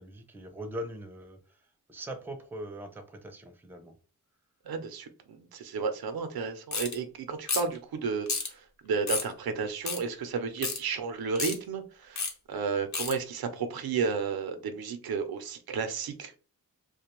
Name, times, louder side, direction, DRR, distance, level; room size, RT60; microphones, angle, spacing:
voice 1, 0.0-1.6 1.9-3.9, right 1 dB, 5° right, 0.4 m, -41 dB
voice 2, 4.6-16.4, right 5 dB, 85° right, 0.5 m, -33 dB
sound 1, 6.7-6.9 7.5-7.8 8.3-8.5 9.1-9.3 9.8-10.0 10.6-10.8 11.3-11.5 12.2-12.3 12.9-13.1, left 4 dB, 50° left, 0.7 m, -30 dB
2.4 x 2.1 x 2.9 m
wide cardioid pair, 90°, 36 cm